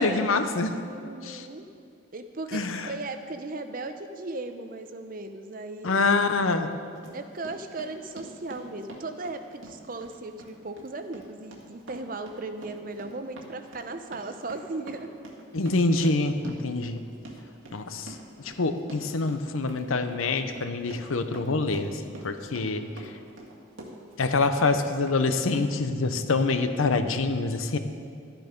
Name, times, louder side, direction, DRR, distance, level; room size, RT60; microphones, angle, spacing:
voice 1, 0.0-0.7 1.2-1.5 2.5-2.9 5.8-6.7 15.5-17.0 17.7-18.2 18.4-23.1 24.2-27.8, left 3 dB, 90° left, 8 dB, 0.8 m, -26 dB
voice 2, 0.8-1.6 2.1-6.2 7.1-15.1, right 2 dB, 45° right, 8 dB, 0.6 m, -37 dB
Run, 6.6-24.3 24.6-25.2 25.5-25.6, right 1 dB, 80° right, 1.8 m, -46 dB
12.0 x 9.1 x 5.2 m, 2.3 s
head